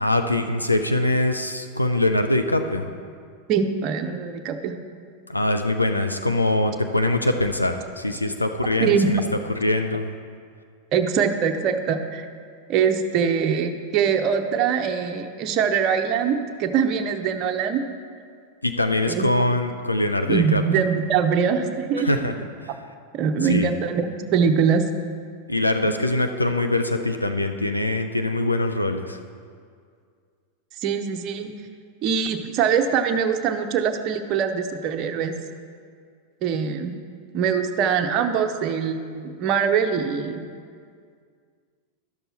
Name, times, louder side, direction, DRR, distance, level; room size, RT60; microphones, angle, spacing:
voice 1, 0.0-2.9 5.3-9.2 9.6-10.1 18.6-20.6 22.0-22.3 22.6-22.7 23.4-23.7 25.5-29.2, left 2 dB, 85° left, 7 dB, 0.4 m, -23 dB
voice 2, 3.5-4.7 8.8-9.1 10.9-12.3 12.7-17.8 19.0-19.3 20.2-22.5 23.1-24.9 25.8-25.9 30.8-31.5 32.0-35.3 36.4-36.9 37.3-40.4, right 6 dB, 35° right, 6 dB, 0.6 m, -23 dB
12.0 x 6.8 x 4.3 m, 2.1 s
figure-of-eight pair, 90°, 0 cm